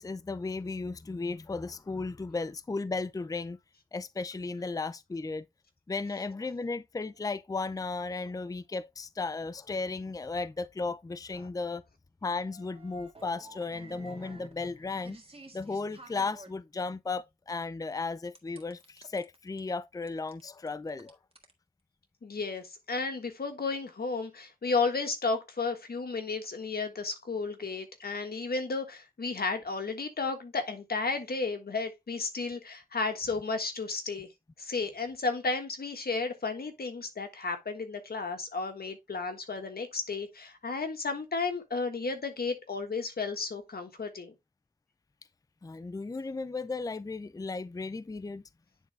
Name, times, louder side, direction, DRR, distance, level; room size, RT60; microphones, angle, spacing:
voice 1, 0.0-3.6 3.9-5.5 5.9-11.8 12.2-15.2 15.5-21.2 45.6-48.4, left 3 dB, 25° left, 0.4 m, -35 dB
sound 1, 12.3-16.5 18.3-19.6 20.1-21.5, right 2 dB, 40° right, 1.7 m, -52 dB
voice 2, 22.2-34.3 34.6-44.3, left 4 dB, 85° left, 1.5 m, -33 dB
10.0 x 3.8 x 3.3 m
wide cardioid pair, 55°, 16 cm